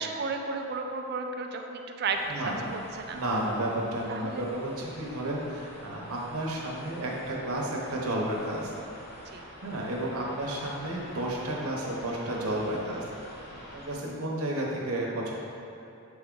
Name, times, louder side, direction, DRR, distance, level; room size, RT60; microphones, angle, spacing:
voice 1, 0.0-3.2 4.1-4.4 9.3-9.4 14.0-14.3, right 4 dB, 45° right, 4 dB, 0.4 m, -33 dB
sound 1, 2.1-13.9, equal, 45° left, 1.0 m, -47 dB
voice 2, 2.3-2.7 3.1-8.8 9.6-13.0 13.7-15.3, right 1 dB, 80° right, -2 dB, 1.0 m, -32 dB
7.6 x 3.5 x 3.8 m, 2.9 s
head